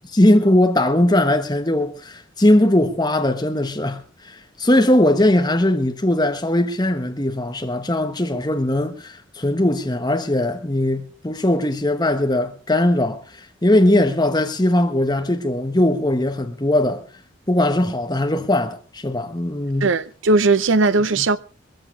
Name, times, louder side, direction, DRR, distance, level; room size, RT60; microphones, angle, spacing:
voice 1, 0.1-13.2 13.6-17.0 17.5-19.9 21.2-21.3, left 1 dB, 20° left, 1.2 m, -19 dB
voice 2, 19.8-21.4, right 3 dB, 70° right, 0.6 m, -18 dB
21.5 x 14.5 x 3.2 m
head